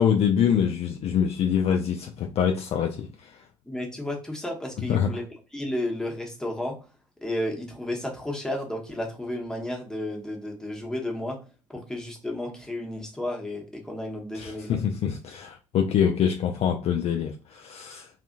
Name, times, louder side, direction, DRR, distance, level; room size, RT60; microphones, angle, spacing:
voice 1, 0.0-3.4 4.9-5.1 14.3-18.1, left 8 dB, 40° left, 0.3 m, -25 dB
voice 2, 3.7-5.2 5.5-6.8 7.2-11.4 11.7-14.8, left 1 dB, 5° left, 0.9 m, -32 dB
2.6 x 2.5 x 2.5 m
figure-of-eight pair, 60°, 17 cm